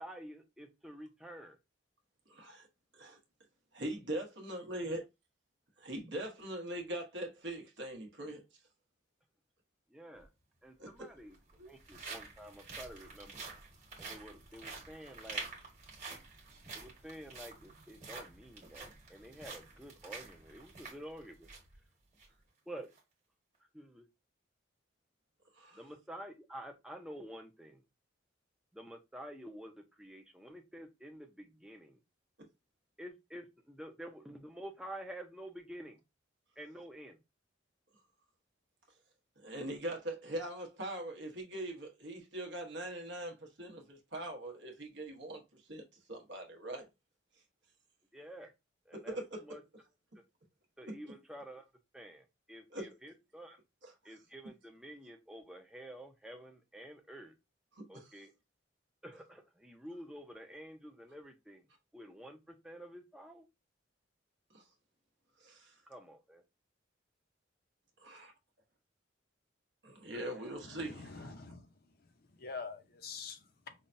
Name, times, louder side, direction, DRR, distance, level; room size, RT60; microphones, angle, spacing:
voice 1, 0.0-1.6 9.9-10.3 10.6-11.4 11.7-13.4 14.0-15.5 16.7-21.5 22.7-22.9 23.7-24.1 25.8-27.8 28.7-32.0 33.0-36.0 36.6-37.2 48.1-48.5 48.9-49.2 49.4-49.6 50.8-51.6 51.9-53.6 54.0-57.3 57.9-58.3 59.0-61.6 61.9-63.5 65.9-66.4 70.1-70.6, right 1 dB, 5° right, 0.5 m, -49 dB
voice 2, 2.3-2.7 2.9-3.2 3.7-5.0 5.8-8.4 10.8-11.1 11.6-11.7 25.5-25.8 32.4-32.5 39.4-45.8 46.1-46.9 48.9-49.6 50.8-51.0 52.7-52.9 53.8-53.9 57.8-58.1 64.5-64.6 65.4-65.7 68.0-68.3 69.8-71.3, right 1 dB, 70° right, 1.1 m, -42 dB
sound 1, 10.2-10.3 11.2-21.7 22.1-22.3 22.8-23.0, right 4 dB, 40° right, 1.5 m, -48 dB
voice 3, 70.6-71.7 72.4-73.7, left 4 dB, 50° left, 0.6 m, -45 dB
5.5 x 2.2 x 2.6 m
head